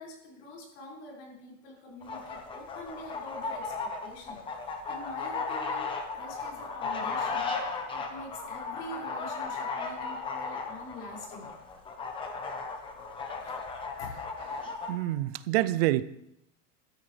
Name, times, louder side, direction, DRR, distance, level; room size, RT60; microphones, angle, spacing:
voice 1, 0.0-7.5 7.9-11.5 13.4-13.6 14.0-14.1, left 2 dB, 65° left, -3 dB, 5.6 m, -45 dB
sound 1, 2.0-14.9, left 4 dB, 15° left, 0.9 m, -35 dB
voice 2, 14.4-16.0, right 15 dB, 55° right, 16 dB, 0.6 m, -28 dB
14.5 x 13.0 x 3.4 m, 0.79 s
supercardioid pair, 180°, 38 cm